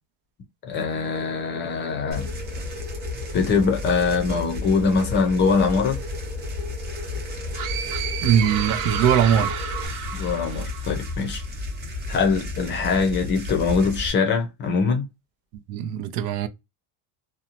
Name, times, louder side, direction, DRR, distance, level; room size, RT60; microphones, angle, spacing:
voice 1, 0.6-2.3 3.3-6.0 10.1-11.4 12.1-15.0, left 5 dB, 30° left, 0.5 m, -23 dB
sound 1, 1.0-9.9, equal, 5° right, 1.0 m, -40 dB
sound 2, 2.1-14.1, left 3 dB, 25° right, 0.7 m, -32 dB
sound 3, 7.5-11.2, right 8 dB, 80° right, 0.9 m, -31 dB
voice 2, 8.2-9.5 15.7-16.5, right 9 dB, 60° right, 0.5 m, -21 dB
2.6 x 2.0 x 2.8 m
cardioid pair, 170°, 40 cm